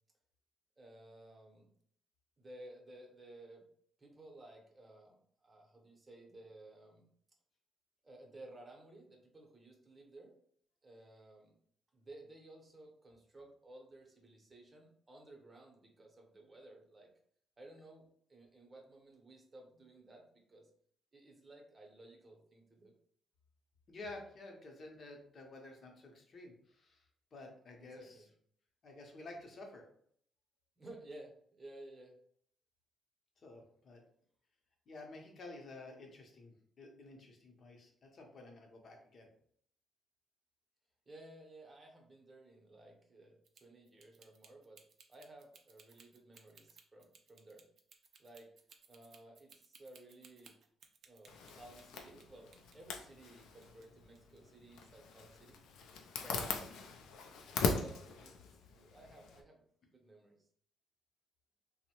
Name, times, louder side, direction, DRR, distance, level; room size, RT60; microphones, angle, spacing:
voice 1, 0.8-1.7 2.4-3.7 4.0-7.1 8.0-10.3 10.8-11.5 11.9-17.1 17.6-20.7 21.1-22.9 27.8-28.3 30.8-32.2 41.1-44.8 45.1-47.6 48.2-48.5 48.9-50.5 51.0-52.5 52.7-55.6 56.2-56.7 57.3-58.4 58.7-59.6 59.9-60.4, right 2 dB, 25° right, 1 dB, 0.7 m, -56 dB
voice 2, 23.9-28.2 28.8-29.9 33.4-34.0 34.9-39.3, left 2 dB, 50° left, 2 dB, 0.7 m, -51 dB
sound 1, 43.4-52.3 52.5-53.9 54.2-54.4, right 5 dB, 60° right, 0.4 m, -62 dB
Zipper (clothing), 51.3-59.4, left 5 dB, 85° left, 0.3 m, -41 dB
2.6 x 2.0 x 2.9 m, 0.63 s
cardioid pair, 90°, 0 cm